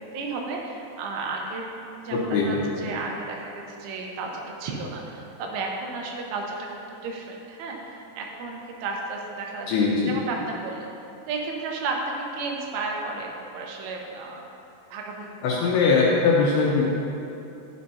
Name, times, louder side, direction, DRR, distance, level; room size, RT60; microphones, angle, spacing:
voice 1, 0.1-9.7 10.0-10.9 11.3-14.5 14.9-15.6, right 3 dB, 80° right, 0 dB, 3.3 m, -33 dB
voice 2, 2.1-2.9 9.7-10.2 15.4-16.8, left 4 dB, 75° left, -4 dB, 2.6 m, -21 dB
11.5 x 8.9 x 2.7 m, 2.8 s
omnidirectional pair, 5.6 m